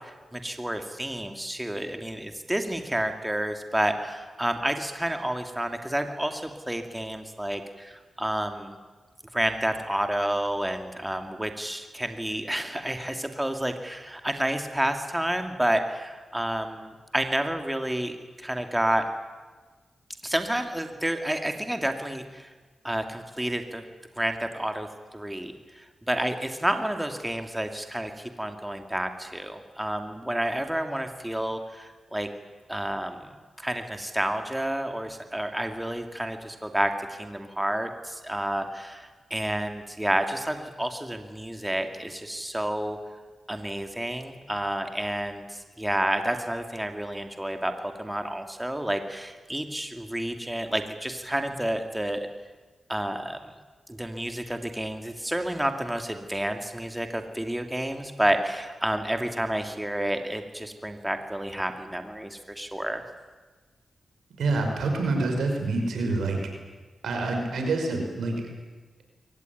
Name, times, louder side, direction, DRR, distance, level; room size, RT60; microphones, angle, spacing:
voice 1, 0.3-8.8 9.3-19.0 20.2-22.5 22.8-23.8 24.2-24.9 25.1-28.1 28.4-32.3 32.7-33.3 33.6-43.0 43.5-52.3 52.9-53.4 53.9-63.0, right 1 dB, 10° right, 6 dB, 2.7 m, -30 dB
voice 2, 64.4-66.4 67.0-68.4, right 3 dB, 85° right, 3 dB, 5.3 m, -26 dB
23.0 x 19.0 x 9.5 m, 1.3 s
cardioid pair, 50°, 0 cm